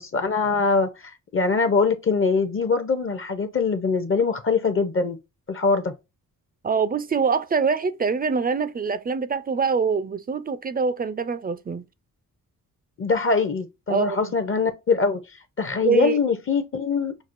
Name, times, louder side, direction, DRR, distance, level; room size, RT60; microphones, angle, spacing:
voice 1, 0.0-5.2 5.5-5.9 13.0-15.2 15.6-17.2, left 4 dB, 35° left, 0.6 m, -23 dB
voice 2, 6.6-11.8 13.9-14.3 15.8-16.2, right 5 dB, 25° right, 0.4 m, -24 dB
6.0 x 2.3 x 2.5 m
cardioid pair, 105°, 35 cm